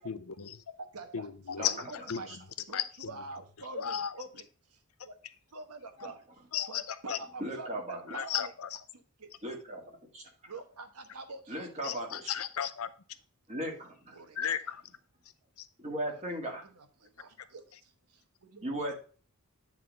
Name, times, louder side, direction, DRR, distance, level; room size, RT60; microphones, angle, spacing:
voice 1, 0.0-0.7 1.1-1.8 2.1-2.2 2.7-3.1 3.7-4.1 6.5-7.2 8.1-8.8 11.8-12.9 14.4-14.8, left 9 dB, 70° left, 12 dB, 0.6 m, -34 dB
voice 2, 0.8-1.3 1.7-1.8 2.1-2.3 2.7-4.8 5.0-5.1 5.5-6.2 6.7-8.5 8.9-9.3 10.5-11.6 14.1-14.5 16.6-18.9, right 3 dB, 85° right, 7 dB, 1.1 m, -46 dB
voice 3, 7.4-8.0 9.4-10.2 11.5-12.3 13.5-14.2 15.8-16.6 18.6-18.9, right 1 dB, 30° right, 0 dB, 2.0 m, -37 dB
9.4 x 3.6 x 5.2 m, 0.38 s
head